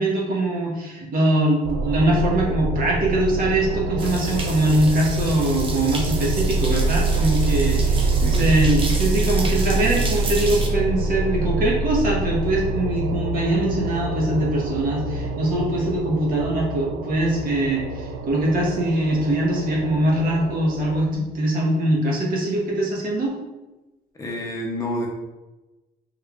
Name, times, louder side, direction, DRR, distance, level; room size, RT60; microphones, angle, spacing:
voice 1, 0.0-23.3, right 1 dB, 55° right, -3 dB, 1.1 m, -22 dB
sound 1, 1.6-21.0, right 3 dB, 75° right, 0.4 m, -25 dB
sound 2, 4.0-10.7, right 3 dB, 30° right, 0.6 m, -33 dB
voice 2, 24.2-25.1, left 1 dB, 20° left, -2 dB, 0.7 m, -28 dB
3.7 x 3.2 x 2.4 m, 1.1 s
cardioid pair, 110°, 17 cm